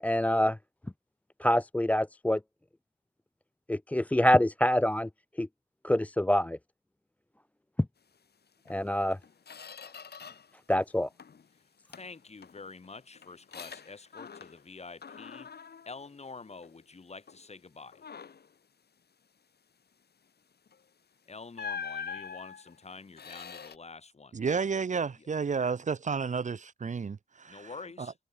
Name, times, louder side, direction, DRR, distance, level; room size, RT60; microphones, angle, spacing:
voice 1, 0.0-0.6 1.4-2.4 3.7-5.1 5.4-5.5 5.8-6.6 8.7-9.2 10.7-11.1, left 1 dB, 10° left, 0.4 m, -25 dB
Squeak, 8.6-8.8 9.2-10.6 10.9-11.5 11.9-14.7 15.0-16.8 17.3-17.5 17.9-18.5 20.7-20.8 21.5-23.8, left 6 dB, 70° left, 2.7 m, -44 dB
voice 2, 11.9-15.5 15.9-18.0 21.3-24.6 25.2-25.3 27.5-28.1, left 4 dB, 40° left, 3.6 m, -47 dB
voice 3, 24.3-27.7 28.0-28.1, right 5 dB, 45° right, 0.8 m, -31 dB
wide cardioid pair, 150°, 17 cm